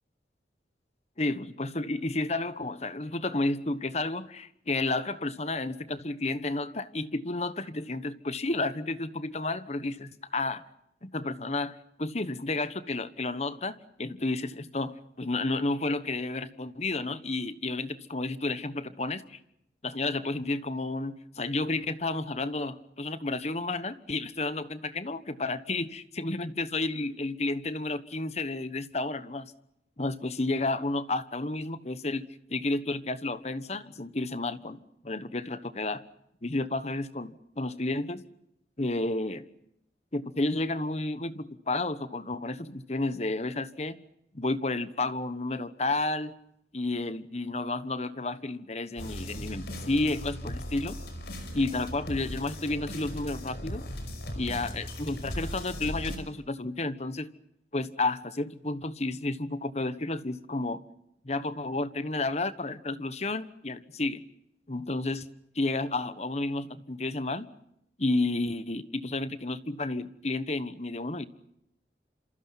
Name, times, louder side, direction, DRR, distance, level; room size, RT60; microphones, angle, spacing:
voice 1, 1.2-10.6 11.0-19.4 19.8-29.5 30.0-36.0 36.4-38.2 38.8-39.5 40.1-44.0 44.3-46.4 46.7-51.0 51.5-53.8 54.3-57.3 57.7-60.8 61.2-64.2 64.7-65.3 65.5-67.5 68.0-71.3, left 2 dB, 40° left, 13 dB, 1.2 m, -31 dB
sound 1, 49.0-56.2, left 1 dB, 65° left, 5.4 m, -38 dB
27.5 x 27.0 x 5.8 m, 0.77 s
head